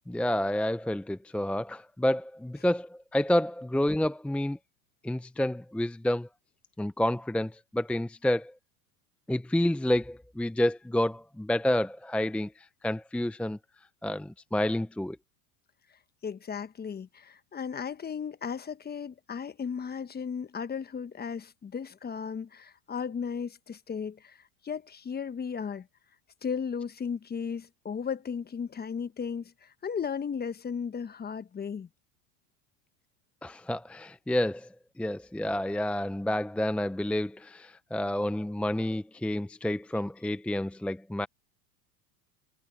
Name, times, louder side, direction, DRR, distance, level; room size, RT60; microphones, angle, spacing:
voice 1, 0.1-4.6 5.0-6.3 6.8-8.5 9.3-13.6 14.0-15.2 33.4-34.7 35.0-41.3, left 1 dB, 5° left, 0.8 m, -29 dB
voice 2, 16.2-24.4 24.6-25.9 26.4-31.9, left 6 dB, 20° left, 1.2 m, -35 dB
hypercardioid pair, 100°, 45 cm